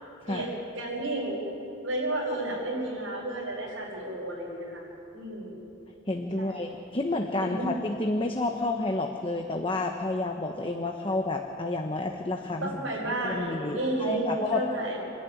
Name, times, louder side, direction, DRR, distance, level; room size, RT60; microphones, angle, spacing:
voice 1, 0.7-1.4 1.8-4.8 5.1-5.6 6.4-6.7 7.4-7.8 12.6-15.0, right 1 dB, 75° right, -8 dB, 5.6 m, -32 dB
voice 2, 6.1-12.7 13.2-14.6, left 2 dB, 25° left, 3 dB, 1.0 m, -30 dB
27.5 x 11.0 x 10.0 m, 2.8 s
head